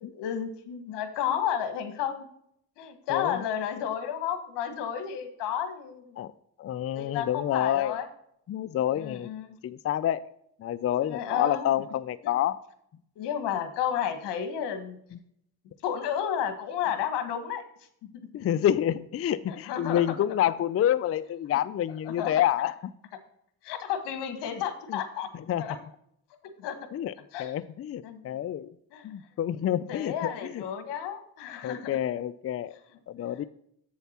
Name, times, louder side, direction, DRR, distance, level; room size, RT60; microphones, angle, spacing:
voice 1, 0.0-2.3 2.8-6.1 6.9-8.1 8.9-9.6 11.0-11.7 13.2-15.0 15.8-17.6 18.0-18.1 19.5-20.0 22.0-22.3 23.6-25.3 25.6-25.7 26.6-26.8 27.3-27.5 28.0-28.2 28.9-29.1 29.9-32.0, left 9 dB, 90° left, 8 dB, 1.4 m, -32 dB
voice 2, 3.1-3.4 6.2-6.3 6.6-8.0 8.5-9.3 9.6-10.2 10.6-12.6 15.1-15.2 18.3-22.7 24.9-25.0 25.3-25.7 26.9-27.1 27.4-28.7 29.0-30.6 31.6-32.8 33.1-33.4, left 11 dB, 35° left, 15 dB, 0.4 m, -28 dB
8.2 x 7.2 x 4.3 m, 0.72 s
cardioid pair, 90°, 40 cm